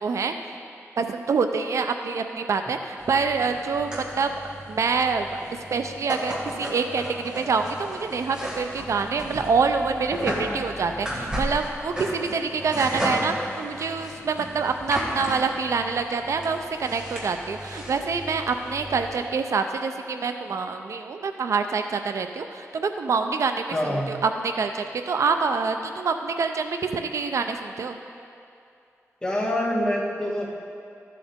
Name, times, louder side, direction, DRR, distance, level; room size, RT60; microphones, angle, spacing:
voice 1, 0.0-0.6 1.0-4.3 4.7-5.3 5.7-28.0, right 5 dB, 70° right, 6 dB, 0.5 m, -26 dB
sound 1, 3.0-19.3, equal, 15° right, 1.6 m, -34 dB
voice 2, 23.7-24.1 29.2-30.6, left 1 dB, 15° left, -6 dB, 1.9 m, -26 dB
14.0 x 7.5 x 3.6 m, 2.5 s
wide cardioid pair, 155°, 5 cm